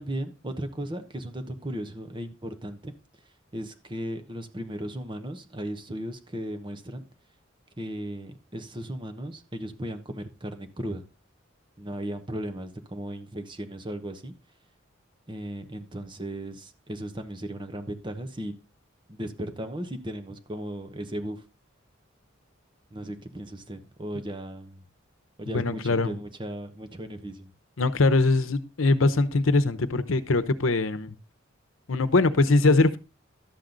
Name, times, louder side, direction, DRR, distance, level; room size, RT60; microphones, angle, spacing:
voice 1, 0.0-2.9 3.5-7.1 7.8-11.0 11.8-14.3 15.3-18.5 19.1-21.4 22.9-24.8 25.4-27.5, right 1 dB, 25° right, 1.0 m, -36 dB
voice 2, 25.5-26.1 27.8-31.2 31.9-33.0, left 3 dB, 80° left, 0.9 m, -22 dB
12.0 x 7.5 x 3.9 m
head